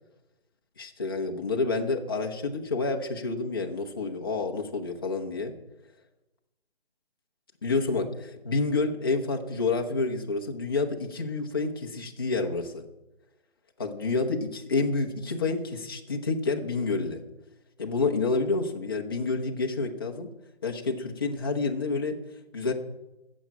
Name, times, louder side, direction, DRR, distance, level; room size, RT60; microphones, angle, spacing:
voice 1, 0.8-5.5 7.6-12.8 13.8-17.2 17.8-20.3 20.6-22.2 22.5-22.7, left 3 dB, 20° left, 1 dB, 0.9 m, -29 dB
13.0 x 7.4 x 8.8 m, 1.0 s
figure-of-eight pair, 165°, 32 cm